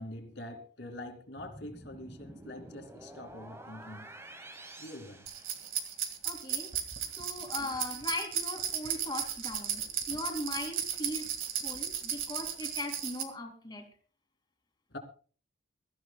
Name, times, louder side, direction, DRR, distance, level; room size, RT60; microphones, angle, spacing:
voice 1, 0.0-4.1 4.8-5.2 14.9-15.0, left 1 dB, 60° left, 4 dB, 2.7 m, -44 dB
sound 1, 1.4-6.1, right 1 dB, 15° right, 1.2 m, -50 dB
sound 2, 5.3-13.2, right 9 dB, 80° right, 1.9 m, -35 dB
voice 2, 6.2-6.7 7.1-11.3 11.6-13.9, left 2 dB, 20° left, 4 dB, 2.5 m, -39 dB
23.0 x 14.0 x 2.3 m, 0.38 s
head